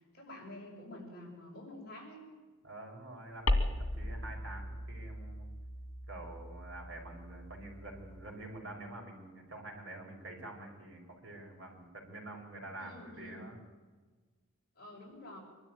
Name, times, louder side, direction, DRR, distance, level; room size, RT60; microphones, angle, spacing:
voice 1, 0.1-2.2 12.8-13.5 14.7-15.4, left 1 dB, 45° left, -2 dB, 6.6 m, -48 dB
voice 2, 2.6-5.5 6.1-13.6, right 2 dB, 55° right, 0 dB, 5.5 m, -47 dB
sound 1, 3.5-8.3, left 1 dB, 85° left, 2.3 m, -37 dB
24.5 x 12.5 x 9.3 m, 1.4 s
head